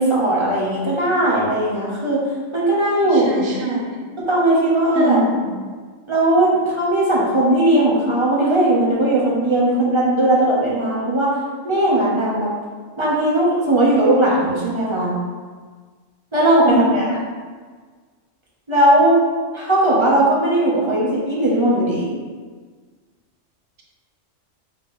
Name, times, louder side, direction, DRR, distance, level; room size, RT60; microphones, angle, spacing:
voice 1, 0.0-2.2 2.5-3.8 4.3-5.2 6.1-11.3 11.6-12.5 13.0-15.1 16.3-17.2 18.7-19.2 19.5-22.1, right 1 dB, 25° right, -6 dB, 0.9 m, -18 dB
voice 2, 3.1-4.2 4.9-5.6 16.6-17.1, right 1 dB, 80° right, -1 dB, 1.2 m, -23 dB
5.5 x 2.9 x 3.1 m, 1.5 s
omnidirectional pair, 1.3 m